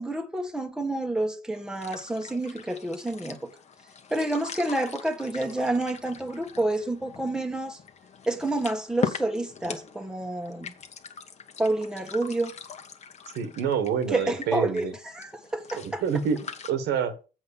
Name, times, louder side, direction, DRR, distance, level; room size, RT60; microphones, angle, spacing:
voice 1, 0.0-3.4 4.1-7.8 8.3-10.7 11.6-12.5 14.1-14.9 15.1-16.0, right 2 dB, 5° right, 1.3 m, -29 dB
sound 1, 1.5-16.7, left 7 dB, 40° left, 1.3 m, -41 dB
voice 2, 13.3-14.9 15.8-17.1, right 7 dB, 80° right, 1.6 m, -27 dB
7.6 x 5.8 x 7.1 m
cardioid pair, 110°, 17 cm